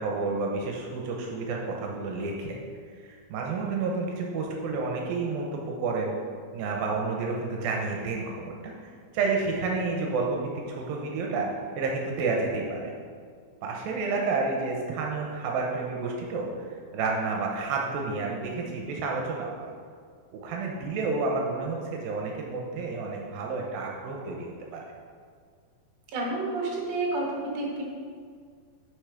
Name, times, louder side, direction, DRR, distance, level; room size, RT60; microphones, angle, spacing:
voice 1, 0.0-2.6 2.9-6.1 6.5-11.5 11.8-12.9 13.6-16.5 16.9-19.7 20.3-24.8, right 4 dB, 85° right, 0 dB, 2.5 m, -30 dB
voice 2, 26.1-27.8, right 2 dB, 55° right, -3 dB, 2.3 m, -30 dB
6.7 x 6.0 x 4.9 m, 2.1 s
omnidirectional pair, 4.2 m